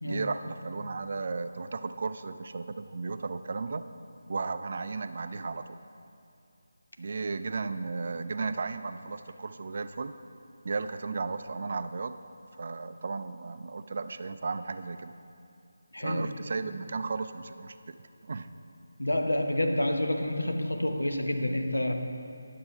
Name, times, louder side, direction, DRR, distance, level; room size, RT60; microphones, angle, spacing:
voice 1, 0.0-3.8 4.3-5.8 7.0-10.1 10.6-12.2 12.6-15.1 16.0-18.0 18.2-18.5, right 4 dB, 50° right, 10 dB, 0.4 m, -34 dB
voice 2, 15.9-16.3 19.0-21.9, left 1 dB, 85° left, 4 dB, 0.9 m, -28 dB
10.0 x 6.6 x 5.7 m, 2.5 s
figure-of-eight pair, 160°, 0 cm